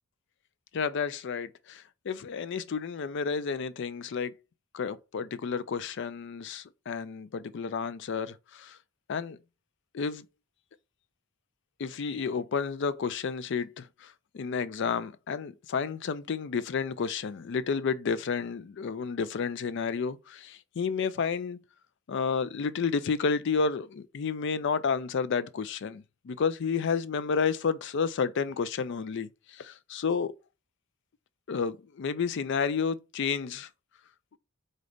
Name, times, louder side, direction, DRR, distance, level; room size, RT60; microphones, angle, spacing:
voice 1, 0.7-4.3 4.7-8.8 9.1-9.4 9.9-10.2 11.8-14.1 14.3-21.6 22.1-30.3 31.5-33.7, left 5 dB, 55° left, 0.4 m, -31 dB
4.0 x 3.8 x 3.4 m
head